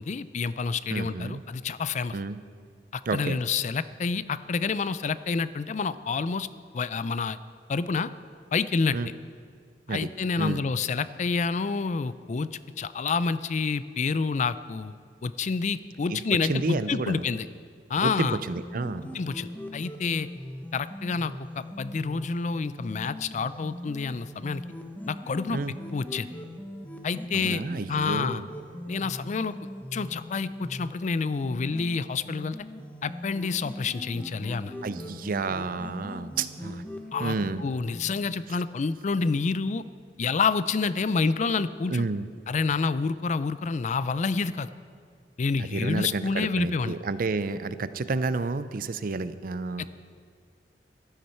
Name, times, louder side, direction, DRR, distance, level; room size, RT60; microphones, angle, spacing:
voice 1, 0.0-2.2 2.9-6.5 6.7-7.4 7.7-8.1 8.5-9.0 9.9-12.5 12.8-14.9 15.2-17.5 17.9-18.4 19.1-20.3 20.7-24.6 25.1-25.6 25.9-26.3 27.0-27.6 27.9-28.4 28.9-29.5 29.9-32.6 33.0-34.7 37.1-39.8 40.2-42.1 42.5-44.7 45.4-47.0 49.8-49.9, left 4 dB, 40° left, 15 dB, 0.4 m, -28 dB
voice 2, 0.9-1.4 2.1-2.4 3.1-3.4 8.9-9.1 9.9-10.1 10.4-10.6 16.1-16.2 16.5-17.3 18.0-19.0 25.5-25.7 27.3-28.4 34.8-36.8 37.2-37.6 41.9-42.3 45.6-49.8, right 3 dB, 50° right, 13 dB, 0.5 m, -30 dB
sound 1, 18.6-38.3, left 1 dB, 10° left, 0.9 m, -40 dB
15.0 x 13.0 x 4.4 m, 2.1 s
head